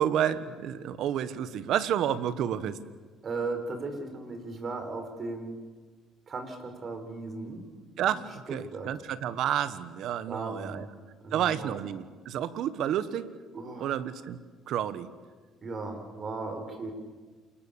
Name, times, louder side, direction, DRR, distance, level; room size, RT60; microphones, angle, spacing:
voice 1, 0.0-2.8 8.0-10.8 11.3-13.3 13.8-14.4 14.7-15.1, right 10 dB, 70° right, 14 dB, 1.4 m, -30 dB
voice 2, 3.2-5.5 6.3-7.7 8.0-8.2 8.7-8.9 10.3-10.9 11.2-11.8 13.5-14.0 15.6-16.9, right 3 dB, 45° right, 6 dB, 5.2 m, -36 dB
28.5 x 22.0 x 7.1 m, 1.4 s
supercardioid pair, 90°, 0 cm